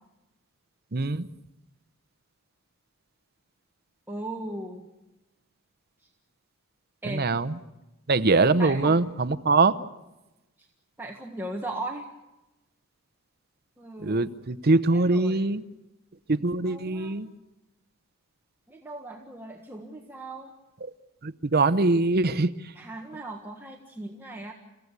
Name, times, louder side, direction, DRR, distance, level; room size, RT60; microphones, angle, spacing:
voice 1, 0.9-1.3 7.0-7.6 8.1-9.7 14.0-15.6 16.3-17.3 21.2-22.5, right 3 dB, 45° right, 13 dB, 0.8 m, -23 dB
voice 2, 4.1-4.9 7.0-7.3 8.6-9.0 10.6-10.7 11.0-12.1 13.8-14.4 14.9-15.4 16.6-17.1 18.7-20.6 22.8-24.5, right 2 dB, 10° right, 0 dB, 1.6 m, -38 dB
30.0 x 16.0 x 8.2 m, 0.99 s
head